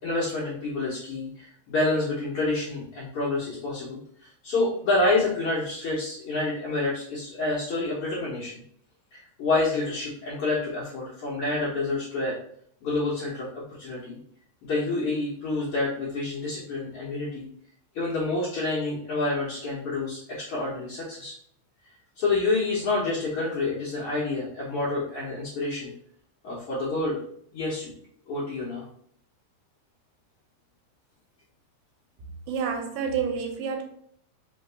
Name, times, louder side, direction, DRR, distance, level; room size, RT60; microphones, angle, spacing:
voice 1, 0.0-8.5 9.1-12.4 12.8-14.2 14.6-17.5 17.9-21.3 22.2-25.9 26.4-27.2 27.5-27.9 28.3-28.8, left 2 dB, 70° left, -7 dB, 1.3 m, -28 dB
voice 2, 32.5-33.8, right 6 dB, 90° right, 4 dB, 2.5 m, -28 dB
5.4 x 2.9 x 3.3 m, 0.65 s
omnidirectional pair, 4.2 m